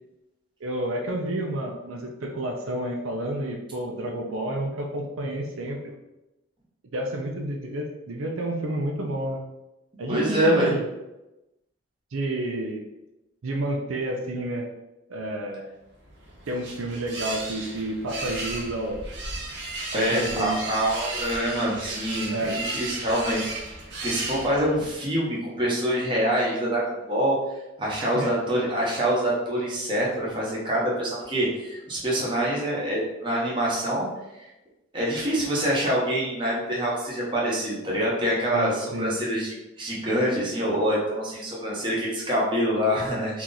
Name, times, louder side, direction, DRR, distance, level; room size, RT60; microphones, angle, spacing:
voice 1, 0.6-6.0 6.9-9.4 10.0-10.9 12.1-12.8 13.4-14.7 15.1-15.7 16.5-19.0 19.9-20.6 22.3-22.6 28.0-28.3 38.5-39.1, right 1 dB, 90° right, 1 dB, 0.5 m, -30 dB
voice 2, 10.1-10.7 19.9-23.7 24.0-27.4 27.8-34.1 34.9-43.4, equal, 25° right, -5 dB, 0.9 m, -25 dB
sound 1, 16.0-24.9, right 2 dB, 60° right, 0.8 m, -34 dB
2.9 x 2.4 x 3.8 m, 0.97 s
head